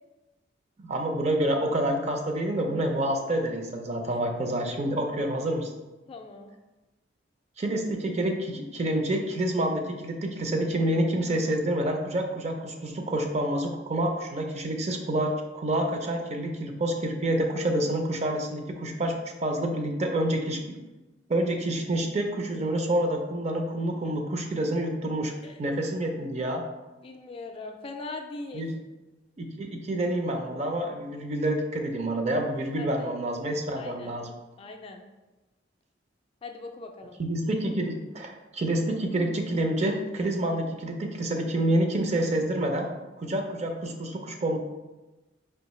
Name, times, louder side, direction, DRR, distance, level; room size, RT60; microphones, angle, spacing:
voice 1, 0.8-5.7 7.6-20.6 21.3-25.3 25.6-26.6 28.5-28.8 29.4-34.3 37.2-42.9 43.2-44.6, right 1 dB, 35° right, 3 dB, 0.5 m, -28 dB
voice 2, 6.1-6.5 25.4-25.6 27.0-28.6 32.8-33.1 33.8-34.1 34.6-35.0 36.4-37.2, left 3 dB, 30° left, 4 dB, 0.3 m, -40 dB
4.5 x 2.8 x 3.0 m, 1.1 s
head